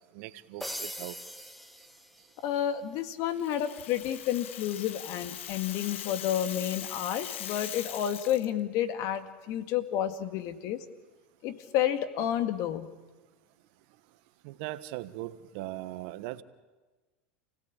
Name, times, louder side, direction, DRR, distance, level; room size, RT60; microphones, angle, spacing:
voice 1, 0.1-1.1 14.4-16.4, right 16 dB, 60° right, 1.2 m, -39 dB
sound 1, 0.6-2.7, equal, ahead, 1.3 m, -41 dB
voice 2, 2.4-10.8 11.4-12.9, left 10 dB, 55° left, 2.0 m, -30 dB
Rattle (instrument), 3.3-8.5, left 11 dB, 80° left, 1.2 m, -41 dB
29.0 x 17.5 x 8.5 m
hypercardioid pair, 100°, 7 cm